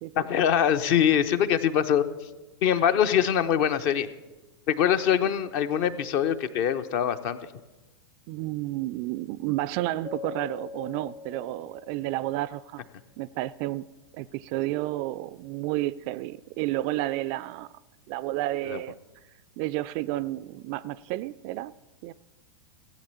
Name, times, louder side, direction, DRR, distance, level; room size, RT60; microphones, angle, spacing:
voice 1, 0.1-2.0 2.6-4.1 4.7-7.4 18.7-18.8, left 9 dB, 45° left, 0.8 m, -23 dB
voice 2, 8.3-12.8 13.2-13.9 14.1-17.7 18.1-19.0 19.6-21.7 22.0-22.1, right 16 dB, 40° right, 0.4 m, -31 dB
Keyboard (musical), 10.1-12.5, left 6 dB, 85° left, 1.3 m, -42 dB
16.0 x 8.5 x 6.9 m
figure-of-eight pair, 95°, 14 cm